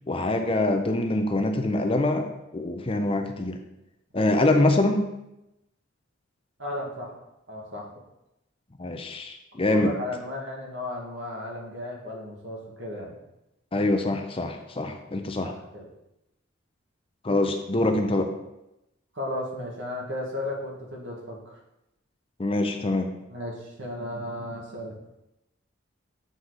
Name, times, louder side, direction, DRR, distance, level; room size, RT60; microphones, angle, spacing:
voice 1, 0.1-3.6 4.1-5.1 8.8-9.9 13.7-15.5 17.2-18.3 22.4-23.1, left 2 dB, 25° left, 5 dB, 0.6 m, -24 dB
voice 2, 6.6-7.2 7.5-7.9 9.7-13.2 15.4-15.9 19.1-21.6 23.3-25.0, left 1 dB, 65° right, -2 dB, 1.8 m, -34 dB
7.8 x 4.1 x 4.8 m, 0.90 s
head